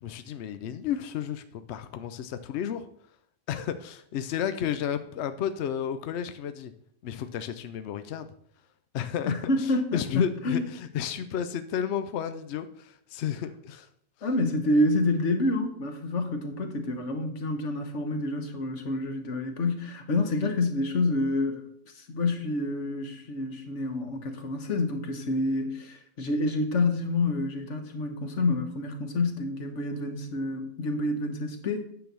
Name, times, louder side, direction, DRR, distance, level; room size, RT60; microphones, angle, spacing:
voice 1, 0.0-2.9 3.5-6.7 7.0-8.3 8.9-13.9, left 9 dB, 70° left, 10 dB, 0.6 m, -32 dB
voice 2, 9.3-10.6 14.2-21.7 21.9-31.9, left 2 dB, 50° left, 6 dB, 1.4 m, -28 dB
9.3 x 4.0 x 6.8 m, 0.66 s
omnidirectional pair, 1.7 m